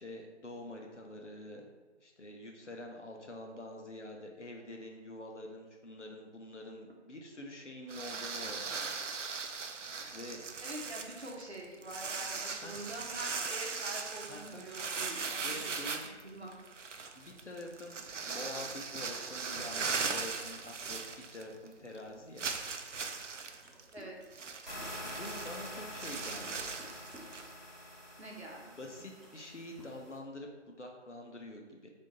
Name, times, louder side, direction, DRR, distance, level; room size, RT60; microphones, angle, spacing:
voice 1, 0.0-1.7 2.0-8.9 10.1-10.4 12.6-12.9 14.3-14.6 15.4-16.1 17.1-21.0 21.3-22.4 25.0-26.7 28.7-31.9, left 1 dB, 75° left, 1 dB, 0.8 m, -46 dB
sound 1, 7.9-21.7 22.0-22.1 22.4-27.5, right 5 dB, 85° right, 0.5 m, -39 dB
voice 2, 10.6-15.7 16.0-16.6 23.9-24.2 28.2-28.6, right 1 dB, 65° right, -2 dB, 1.0 m, -45 dB
sound 2, 23.6-27.5 28.5-28.7 29.0-29.5 29.8-30.6, equal, ahead, 0.4 m, -57 dB
sound 3, 24.7-30.2, equal, 40° right, 1.4 m, -46 dB
3.5 x 2.8 x 4.0 m, 1.2 s
figure-of-eight pair, 180°, 36 cm